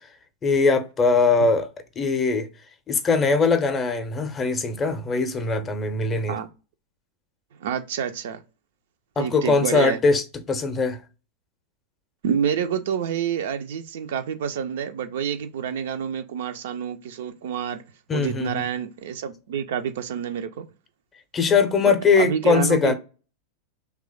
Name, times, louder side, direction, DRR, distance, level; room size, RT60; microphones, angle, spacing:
voice 1, 0.4-1.7 2.0-2.5 2.9-6.4 9.2-11.0 18.1-18.6 21.3-22.9, left 4 dB, 20° left, 0.5 m, -21 dB
voice 2, 7.6-8.4 9.2-10.0 12.2-17.8 18.1-20.7 21.9-22.9, right 8 dB, 55° right, 0.3 m, -28 dB
3.0 x 2.2 x 3.5 m
figure-of-eight pair, 90°, 0 cm